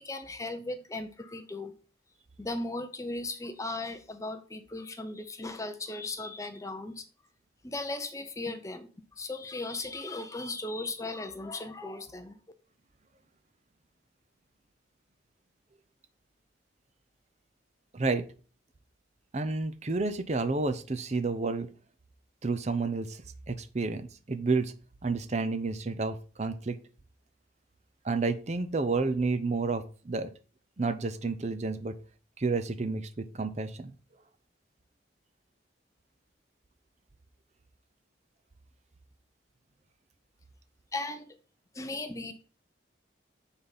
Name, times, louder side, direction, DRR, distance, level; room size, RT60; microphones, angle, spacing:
voice 1, 0.0-1.7 2.4-7.1 7.6-12.4 40.9-41.4 41.7-42.3, left 2 dB, 15° left, 8 dB, 0.5 m, -37 dB
voice 2, 17.9-18.3 19.3-21.7 22.4-24.7 25.0-26.8 28.0-30.3 30.8-32.0 32.4-33.9, right 3 dB, 35° right, 11 dB, 0.6 m, -30 dB
9.2 x 4.1 x 3.9 m, 0.37 s
head